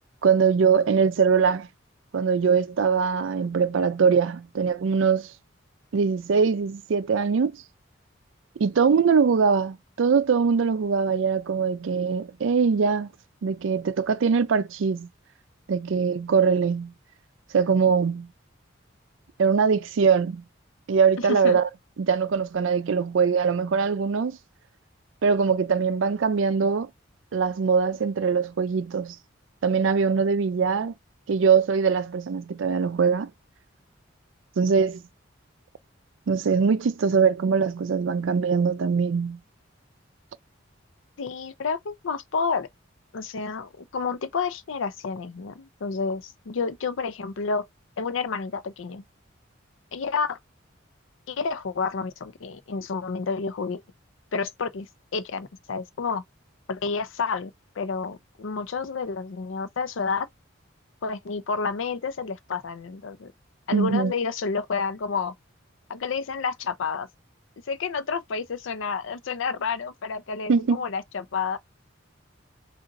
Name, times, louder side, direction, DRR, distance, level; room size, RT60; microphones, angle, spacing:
voice 1, 0.2-1.7 2.1-5.3 5.9-7.6 8.6-13.1 13.4-15.1 15.7-16.9 17.5-18.3 19.4-20.4 20.9-21.7 22.0-24.4 25.2-26.9 27.3-29.2 29.6-30.9 31.3-33.3 34.6-35.0 36.3-39.4 63.7-64.1 70.5-70.8, right 5 dB, 75° right, 0.4 m, -22 dB
voice 2, 21.2-21.6 41.2-42.7 43.1-47.6 48.0-49.0 49.9-50.4 51.3-53.8 54.3-54.9 55.1-56.2 56.7-60.3 61.0-63.3 63.7-65.3 65.9-67.1 67.7-71.6, left 5 dB, 75° left, 0.5 m, -30 dB
2.6 x 2.5 x 3.9 m
head